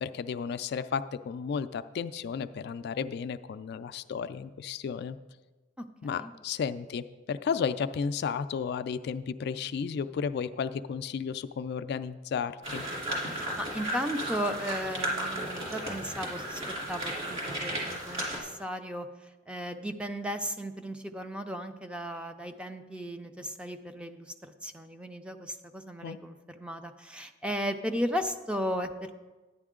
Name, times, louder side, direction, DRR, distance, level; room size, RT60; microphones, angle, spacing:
voice 1, 0.0-5.2 6.0-12.8 26.0-26.2, left 6 dB, 55° left, 11 dB, 0.3 m, -33 dB
sound 1, 12.6-18.4, right 1 dB, 35° right, 3.1 m, -34 dB
voice 2, 13.2-16.6 16.9-19.1 19.5-29.1, equal, 5° right, 7 dB, 0.4 m, -35 dB
9.9 x 9.8 x 3.7 m, 1.2 s
head